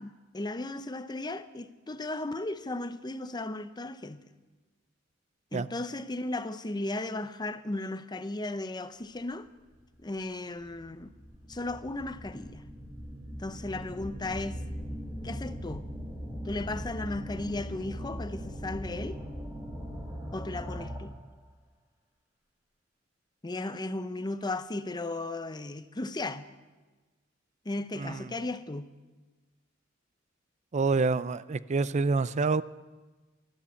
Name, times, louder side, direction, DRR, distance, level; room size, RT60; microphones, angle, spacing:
voice 1, 0.0-4.2 5.5-9.5 10.0-11.1 11.5-12.6 13.4-14.6 15.2-15.9 16.4-19.2 20.3-21.2 23.4-26.5 27.6-28.9, left 2 dB, 20° left, 0.7 m, -35 dB
sound 1, 9.8-9.9 10.6-21.2, equal, 10° right, 3.1 m, -40 dB
voice 2, 30.7-32.6, right 4 dB, 35° right, 0.4 m, -27 dB
13.0 x 11.5 x 8.5 m
head